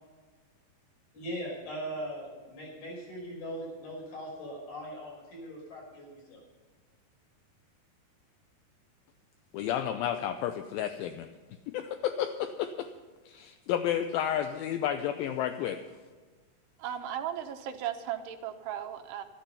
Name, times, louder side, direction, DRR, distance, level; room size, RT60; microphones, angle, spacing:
voice 1, 1.1-6.4, equal, 60° left, -3 dB, 7.4 m, -40 dB
voice 2, 9.5-11.3 11.7-12.9 13.3-15.8, left 10 dB, 80° left, 7 dB, 2.3 m, -31 dB
voice 3, 16.8-19.2, right 10 dB, 85° right, 6 dB, 3.1 m, -36 dB
13.0 x 12.5 x 5.6 m, 1.4 s
omnidirectional pair, 4.6 m